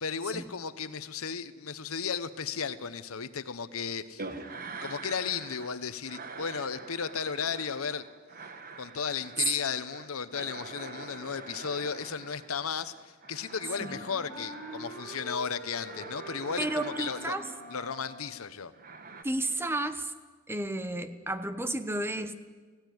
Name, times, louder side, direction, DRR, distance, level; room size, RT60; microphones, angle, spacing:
voice 1, 0.0-4.3 4.8-8.1 8.8-17.4 17.7-18.7, left 6 dB, 90° left, 13 dB, 1.0 m, -35 dB
sound 1, 4.2-5.8 6.0-15.3 15.7-18.0 18.7-19.2, right 4 dB, 45° right, 1.4 m, -45 dB
Wind instrument woodwind instrument, 13.5-18.6, equal, 85° right, 6.4 m, -45 dB
voice 2, 16.6-17.5 19.2-20.1 20.5-22.3, right 2 dB, 10° right, 11 dB, 0.9 m, -32 dB
17.5 x 16.5 x 9.5 m, 1.4 s
head